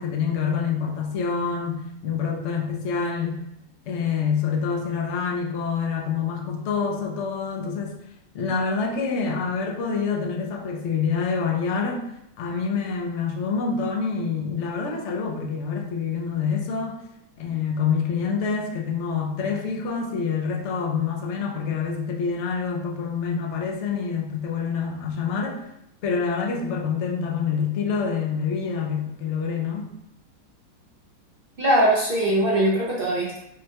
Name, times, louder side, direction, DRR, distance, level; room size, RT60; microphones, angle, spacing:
voice 1, 0.0-3.4 3.9-8.0 8.3-12.1 12.4-17.0 17.4-25.6 26.0-29.9, left 5 dB, 75° left, 0 dB, 0.6 m, -26 dB
voice 2, 31.6-33.4, right 1 dB, 75° right, -6 dB, 0.5 m, -21 dB
5.3 x 2.2 x 2.8 m, 0.80 s
omnidirectional pair, 1.9 m